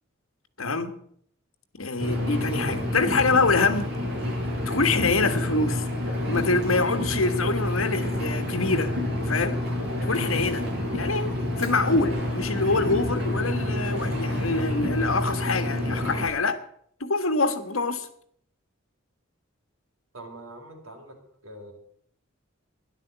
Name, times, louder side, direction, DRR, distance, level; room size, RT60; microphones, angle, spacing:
voice 1, 0.6-0.9 1.8-3.9 4.7-5.8 6.3-8.9 9.3-9.6 10.0-10.7 10.9-16.6 17.0-18.1, left 3 dB, 80° left, 1.5 m, -25 dB
voice 2, 1.8-2.2 20.1-21.2 21.4-21.7, right 1 dB, 90° right, 4.7 m, -44 dB
Engine, 2.0-16.3, left 1 dB, 55° right, 7.0 m, -28 dB
13.0 x 11.5 x 8.2 m
head